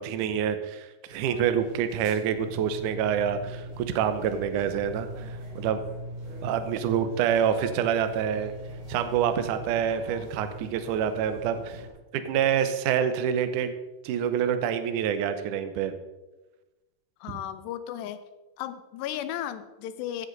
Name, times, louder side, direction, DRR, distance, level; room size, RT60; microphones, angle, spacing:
voice 1, 0.0-5.8 6.4-8.5 8.9-11.8 12.1-13.7 14.0-15.9 17.3-17.4, right 8 dB, 80° right, 9 dB, 1.8 m, -27 dB
sound 1, 1.1-11.9, right 1 dB, 60° right, 5.2 m, -41 dB
voice 2, 17.2-18.2 18.6-20.3, left 11 dB, 85° left, 11 dB, 2.9 m, -35 dB
15.5 x 8.1 x 4.0 m, 1.1 s
omnidirectional pair, 4.8 m